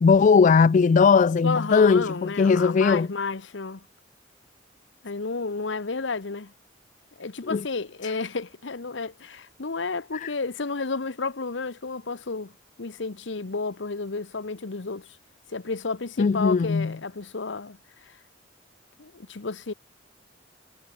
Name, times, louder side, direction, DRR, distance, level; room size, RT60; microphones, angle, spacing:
voice 1, 0.0-3.1 7.5-7.6 8.0-8.1 10.1-10.3 16.2-16.9, left 5 dB, 45° left, 0.3 m, -19 dB
voice 2, 1.4-3.9 5.0-6.5 7.2-12.5 12.8-15.1 15.5-17.8 18.0-18.1 19.0-19.7, left 4 dB, 80° left, 1.0 m, -31 dB
head